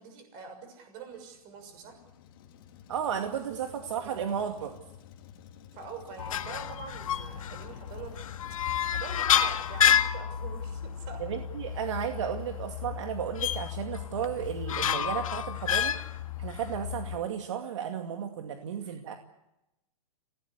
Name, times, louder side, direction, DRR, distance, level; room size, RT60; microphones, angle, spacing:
voice 1, 0.0-2.0 5.7-8.1 8.9-11.2 18.8-18.9, right 5 dB, 25° right, 6 dB, 6.3 m, -45 dB
Truck, 1.1-9.9, left 9 dB, 40° left, 2.5 m, -52 dB
voice 2, 2.9-4.8 11.2-15.9 16.4-19.2, right 8 dB, 55° right, 5 dB, 2.4 m, -34 dB
sound 1, 6.2-17.2, left 9 dB, 70° left, 1.7 m, -30 dB
29.0 x 18.0 x 8.2 m, 0.91 s
hypercardioid pair, 175°, 18 cm